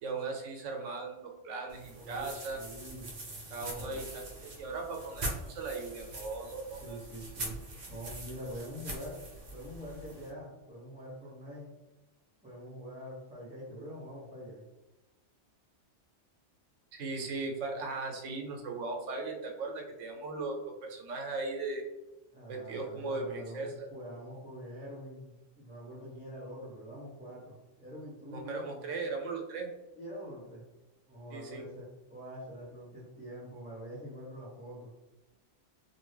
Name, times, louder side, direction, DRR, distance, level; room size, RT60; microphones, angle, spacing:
voice 1, 0.0-2.6 3.5-4.0 4.4-7.0 16.9-21.9 22.5-23.9 28.3-29.7 31.3-31.6, right 3 dB, 85° right, 2 dB, 1.0 m, -38 dB
sound 1, 1.7-10.3, right 1 dB, 45° right, 0.6 m, -43 dB
voice 2, 1.9-3.1 3.6-4.0 6.7-7.6 7.9-9.2 9.5-11.7 12.4-14.6 22.3-28.8 30.0-30.6 31.1-34.9, equal, 10° right, -9 dB, 0.7 m, -45 dB
2.7 x 2.6 x 3.3 m, 1.0 s
omnidirectional pair, 1.2 m